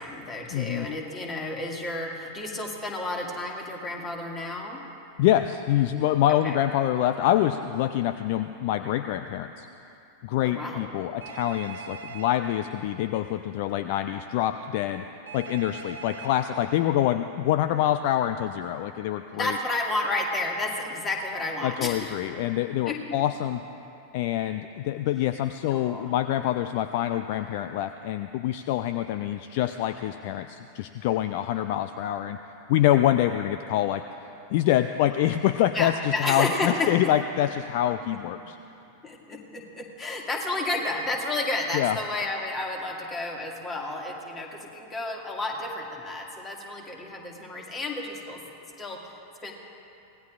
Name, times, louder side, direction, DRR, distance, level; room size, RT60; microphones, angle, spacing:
voice 1, 0.0-4.8 6.4-6.6 10.4-10.9 19.3-22.2 22.9-23.0 25.7-26.1 35.7-36.9 39.0-48.4 48.8-49.5, left 2 dB, 20° left, 0 dB, 2.1 m, -31 dB
voice 2, 0.5-0.9 5.2-9.7 10.2-15.0 15.3-19.6 21.6-23.6 24.1-32.4 32.7-34.0 34.5-38.6 41.7-42.0, left 12 dB, 50° left, 10 dB, 0.4 m, -25 dB
Telephone, 11.2-12.3 15.3-16.3, right 6 dB, 65° right, 1.0 m, -41 dB
25.0 x 18.0 x 2.5 m, 2.8 s
figure-of-eight pair, 90°, 0 cm